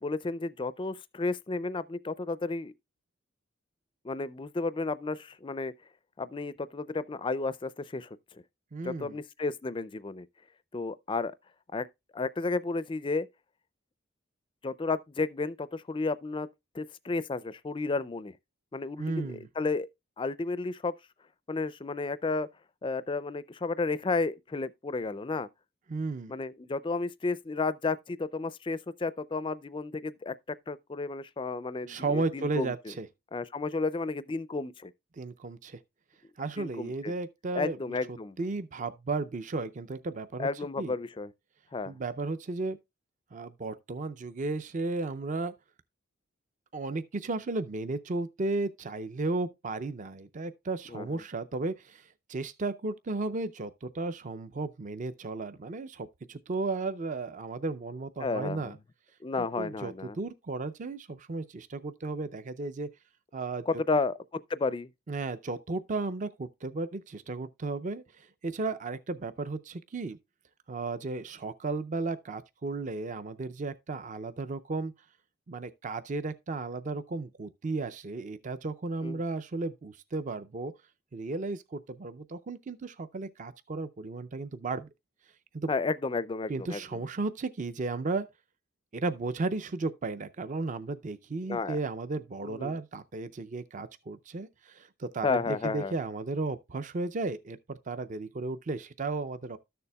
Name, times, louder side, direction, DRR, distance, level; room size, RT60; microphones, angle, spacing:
voice 1, 0.0-2.7 4.0-5.7 6.2-8.1 8.8-10.3 10.7-11.3 11.7-11.9 12.1-13.3 14.6-16.5 16.7-18.3 18.7-19.9 20.2-20.9 21.5-22.5 22.8-25.5 26.3-30.3 30.7-32.7 33.3-34.9 36.6-37.1 37.5-38.4 40.4-41.3 41.7-42.0 50.9-51.1 58.2-58.7 59.2-60.2 63.7-64.2 64.5-64.9 79.0-79.2 85.7-86.8 91.4-91.8 92.4-92.8 95.2-95.9, left 3 dB, 25° left, 0.4 m, -32 dB
voice 2, 8.7-9.2 19.0-19.5 25.9-26.3 31.9-33.1 35.1-35.8 36.4-40.5 40.8-40.9 41.8-42.8 43.3-45.5 46.7-58.8 59.4-62.9 63.3-63.6 65.1-70.2 70.7-74.9 75.5-80.7 81.1-84.9 85.5-85.7 86.5-88.3 88.9-99.6, right 3 dB, 40° right, 0.5 m, -34 dB
13.0 x 6.8 x 2.2 m
head